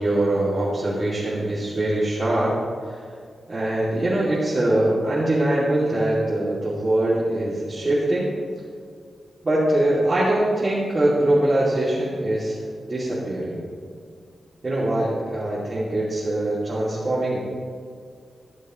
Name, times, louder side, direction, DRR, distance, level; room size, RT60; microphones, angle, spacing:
voice 1, 0.0-2.5 2.9-3.0 3.5-8.3 9.4-12.6 12.8-13.6 14.6-17.4, right 1 dB, 30° right, -10 dB, 2.8 m, -22 dB
17.0 x 11.0 x 3.2 m, 2.2 s
wide cardioid pair, 150°, 0 cm